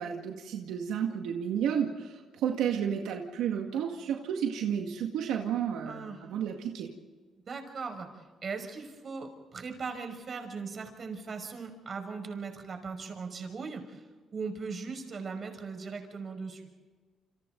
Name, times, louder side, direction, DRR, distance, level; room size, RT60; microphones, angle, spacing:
voice 1, 0.0-6.9, right 8 dB, 90° right, 2 dB, 2.0 m, -32 dB
voice 2, 5.8-6.5 7.5-8.1 8.4-14.0 14.3-16.7, right 4 dB, 45° right, 5 dB, 5.6 m, -39 dB
29.0 x 26.5 x 4.0 m, 1.4 s
cardioid pair, 90°, 0 cm